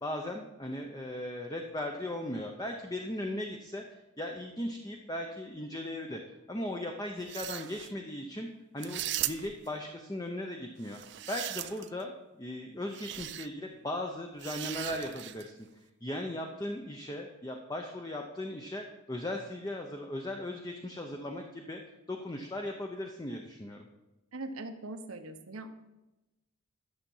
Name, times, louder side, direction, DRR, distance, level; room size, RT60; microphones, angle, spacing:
voice 1, 0.0-3.8 4.2-6.2 6.5-8.5 8.7-11.0 11.3-15.6 16.0-21.8 22.1-23.9, left 1 dB, 15° left, 2 dB, 0.7 m, -37 dB
sound 1, 7.2-7.9 8.8-9.7 10.8-12.0 12.9-13.5 14.4-15.5, right 14 dB, 55° right, 0.4 m, -38 dB
voice 2, 24.3-25.7, right 2 dB, 90° right, 7 dB, 1.1 m, -41 dB
12.0 x 7.2 x 5.5 m, 1.0 s
head